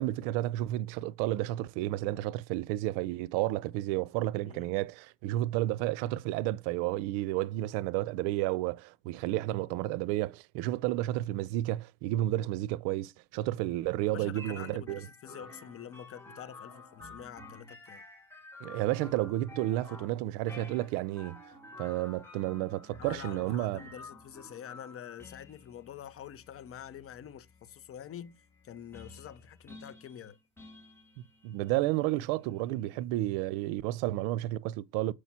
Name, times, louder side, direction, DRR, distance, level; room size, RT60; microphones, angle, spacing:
voice 1, 0.0-15.1 18.6-21.4 21.8-23.8 31.4-35.1, right 16 dB, 75° right, 0.6 m, -31 dB
voice 2, 14.1-18.0 23.0-28.4 28.6-30.4 32.9-33.0, left 9 dB, 30° left, 0.8 m, -46 dB
sound 1, 14.4-33.0, left 2 dB, 5° left, 2.6 m, -52 dB
7.2 x 5.0 x 4.2 m
cardioid pair, 120°, 42 cm